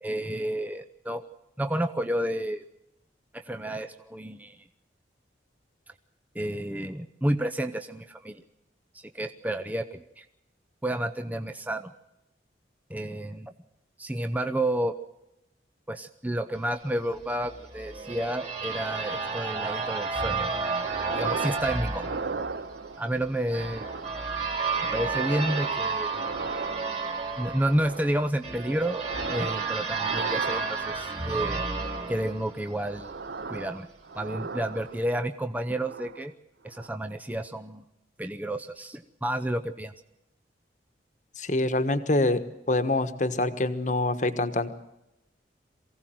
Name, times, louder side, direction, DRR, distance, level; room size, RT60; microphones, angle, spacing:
voice 1, 0.0-1.3 1.6-2.6 3.3-4.6 5.9-6.0 6.3-8.4 8.9-10.3 10.8-11.9 12.9-13.5 14.0-14.9 15.9-20.5 21.1-22.1 23.0-23.9 24.8-26.2 27.4-31.6 32.1-33.1 33.5-33.9 34.1-36.3 36.6-37.8 38.2-39.9, right 1 dB, 10° right, 7 dB, 0.7 m, -30 dB
sound 1, 17.4-33.1, right 4 dB, 35° right, 4.2 m, -32 dB
sound 2, 20.8-21.7 22.0-23.1 23.6-24.3 24.7-27.2 27.6-28.3 28.7-29.7 30.0-31.1 31.7-32.3 32.7-35.2 35.6-36.3 36.7-36.9, right 4 dB, 65° right, 0.6 m, -38 dB
voice 2, 41.4-42.4 42.7-44.7, left 2 dB, 45° left, 10 dB, 1.3 m, -25 dB
23.0 x 16.5 x 7.7 m, 0.89 s
head